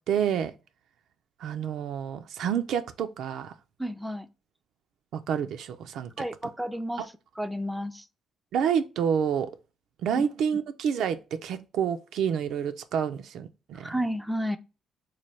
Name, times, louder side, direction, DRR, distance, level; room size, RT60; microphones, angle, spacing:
voice 1, 0.1-0.5 1.4-3.5 5.1-6.1 7.0-7.1 8.5-9.5 10.0-13.9, right 8 dB, 80° right, 0.4 m, -28 dB
voice 2, 3.8-4.3 6.2-7.0 7.4-8.1 10.2-10.3 13.7-14.6, equal, 5° right, 0.3 m, -31 dB
3.2 x 2.2 x 4.1 m
cardioid pair, 90°, 0 cm